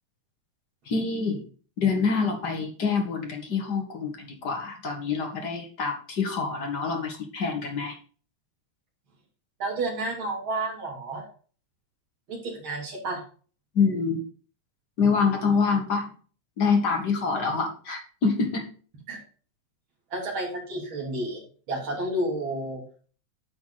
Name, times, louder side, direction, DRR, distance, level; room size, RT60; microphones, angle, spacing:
voice 1, 0.9-1.4 1.8-8.0 13.8-14.2 15.0-16.1 16.6-18.7, left 5 dB, 40° left, 3 dB, 1.7 m, -26 dB
voice 2, 9.6-11.2 12.3-13.2 19.1-19.2 20.1-21.4 21.7-22.8, right 2 dB, 40° right, -3 dB, 3.8 m, -30 dB
10.0 x 5.6 x 4.1 m, 0.41 s
omnidirectional pair, 3.5 m